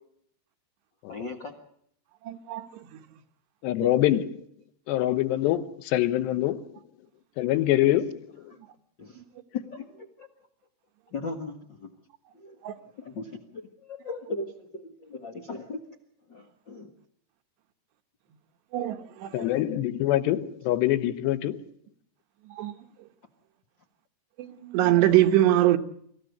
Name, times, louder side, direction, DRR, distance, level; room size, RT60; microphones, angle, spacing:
voice 1, 1.1-1.5 9.0-9.2 9.5-10.3 11.1-11.9 12.4-12.5 13.0-15.8 16.3-16.9, left 3 dB, 65° left, 1.1 m, -37 dB
voice 2, 2.3-2.7 12.6-12.7 18.7-19.4 22.5-22.7 24.4-25.8, right 14 dB, 85° right, 3.4 m, -23 dB
voice 3, 3.6-4.4 4.9-6.7 7.4-8.2 19.3-21.6, left 14 dB, 90° left, 3.2 m, -24 dB
25.5 x 15.5 x 8.0 m
omnidirectional pair, 4.8 m